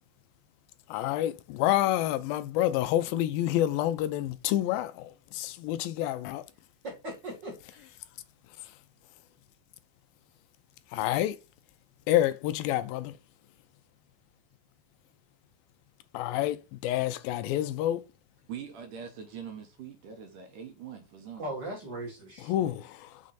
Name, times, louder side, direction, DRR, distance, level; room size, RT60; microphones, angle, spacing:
voice 1, 0.9-6.4 10.9-11.4 12.1-13.1 16.1-18.0 22.4-23.2, left 13 dB, 80° left, 2.3 m, -28 dB
voice 2, 6.8-7.9 21.4-22.5, right 1 dB, 35° right, 2.1 m, -39 dB
voice 3, 18.5-21.6, right 8 dB, 70° right, 2.3 m, -43 dB
6.3 x 4.3 x 4.0 m
omnidirectional pair, 4.2 m